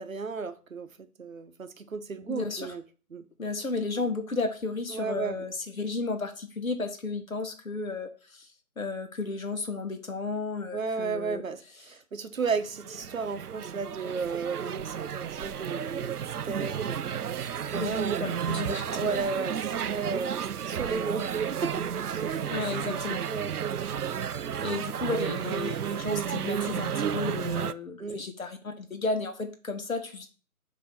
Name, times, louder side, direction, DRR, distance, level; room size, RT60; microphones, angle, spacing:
voice 1, 0.0-2.8 3.1-3.2 4.9-5.5 10.7-16.2 16.4-17.0 17.7-18.4 18.9-22.5 23.3-23.6 28.0-28.3, right 5 dB, 60° right, 0.8 m, -34 dB
voice 2, 2.3-2.7 3.4-8.5 8.8-11.4 16.6-16.7 17.7-19.2 22.5-23.2 24.6-30.3, left 3 dB, 65° left, 1.4 m, -33 dB
sound 1, 12.5-27.7, right 8 dB, 85° right, 0.5 m, -32 dB
6.9 x 2.9 x 5.7 m
figure-of-eight pair, 155°, 45 cm